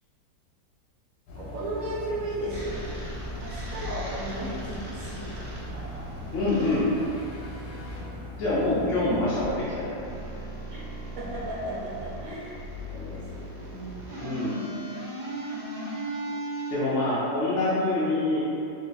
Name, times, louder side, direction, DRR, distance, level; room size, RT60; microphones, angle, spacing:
sound 1, 1.3-9.5, left 2 dB, 90° left, 1.2 m, -40 dB
voice 1, 1.4-2.8 3.4-5.8 6.6-6.8 11.2-12.6 12.9-14.0, right 1 dB, 60° right, -8 dB, 1.2 m, -35 dB
sound 2, 2.5-8.0 9.3-16.8, right 1 dB, 80° right, 1.3 m, -38 dB
voice 2, 6.3-6.9 8.4-10.0 14.2-14.7 16.7-18.4, left 2 dB, 60° left, -10 dB, 0.8 m, -25 dB
3.1 x 2.1 x 3.8 m, 2.7 s
omnidirectional pair, 1.7 m